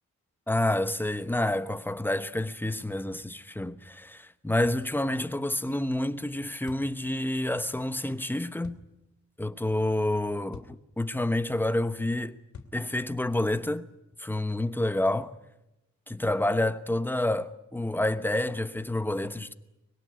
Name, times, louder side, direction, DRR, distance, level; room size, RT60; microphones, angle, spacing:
voice 1, 0.5-8.8 9.4-12.4 12.7-13.9 14.2-15.3 16.1-19.5, left 1 dB, 5° left, 1.1 m, -28 dB
sound 1, 6.7-6.9 8.6-8.9 10.5-10.8 12.5-12.8, left 5 dB, 75° left, 3.0 m, -46 dB
24.5 x 21.5 x 9.4 m
wide cardioid pair, 130°, 29 cm